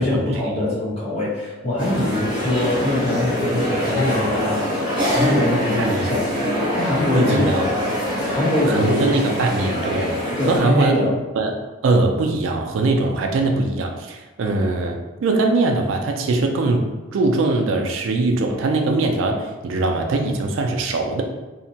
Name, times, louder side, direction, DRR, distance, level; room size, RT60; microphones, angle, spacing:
voice 1, 0.0-4.7 5.1-6.3 6.7-7.6 8.3-9.3 10.4-11.2, left 1 dB, 30° left, -7 dB, 0.8 m, -23 dB
sound 1, 1.8-10.6, left 1 dB, 25° right, 1.0 m, -23 dB
voice 2, 5.8-6.1 7.1-7.7 8.7-11.0 11.4-11.5 11.8-16.9 17.1-21.2, right 3 dB, 75° right, 3 dB, 0.4 m, -21 dB
2.7 x 2.1 x 2.7 m, 1.2 s
head